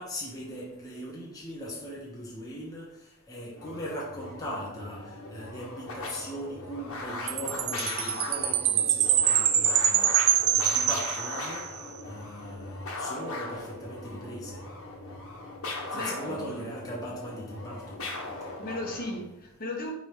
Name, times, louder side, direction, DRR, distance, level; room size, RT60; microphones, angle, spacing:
voice 1, 0.0-2.8 3.3-5.0 5.3-9.1 9.5-10.1 10.6-11.6 12.1-12.6 13.0-14.5 15.9-18.0, equal, 15° left, -4 dB, 1.0 m, -39 dB
sound 1, 3.5-19.2, left 2 dB, 75° left, 1.4 m, -39 dB
Chime, 7.3-11.8, right 10 dB, 70° right, 0.6 m, -25 dB
voice 2, 15.9-16.7 18.6-19.9, left 2 dB, 45° left, 0 dB, 1.3 m, -36 dB
5.4 x 4.7 x 4.6 m, 0.89 s
head